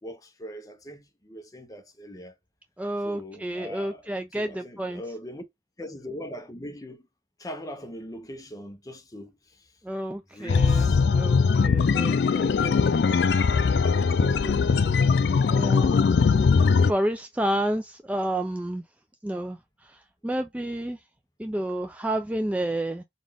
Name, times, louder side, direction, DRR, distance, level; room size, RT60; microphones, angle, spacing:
voice 1, 0.0-2.4 3.0-5.4 5.8-7.1 7.4-9.8 10.1-11.0 15.3-15.6, equal, 20° left, 0.8 m, -41 dB
voice 2, 2.8-4.5 4.8-5.0 9.8-13.2 14.2-14.9 15.5-16.0 16.8-18.8 19.2-20.0 20.2-21.0 21.4-23.0, right 1 dB, 10° right, 0.3 m, -30 dB
sound 1, 10.5-16.9, left 5 dB, 65° left, 0.4 m, -21 dB
4.1 x 2.4 x 3.5 m
head